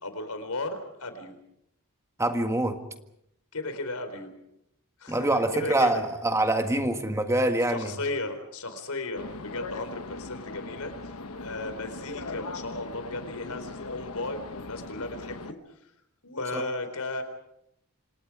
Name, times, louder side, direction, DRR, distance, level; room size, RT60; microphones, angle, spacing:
voice 1, 0.0-1.3 3.5-4.3 5.0-6.0 7.7-10.9 11.4-15.6 16.2-17.2, left 2 dB, 90° left, 8 dB, 4.3 m, -35 dB
voice 2, 2.2-2.8 5.1-7.9 16.5-16.6, right 1 dB, 15° right, 6 dB, 1.7 m, -25 dB
sound 1, 9.1-15.5, left 3 dB, 75° left, 1.3 m, -39 dB
28.5 x 26.5 x 5.0 m, 0.78 s
head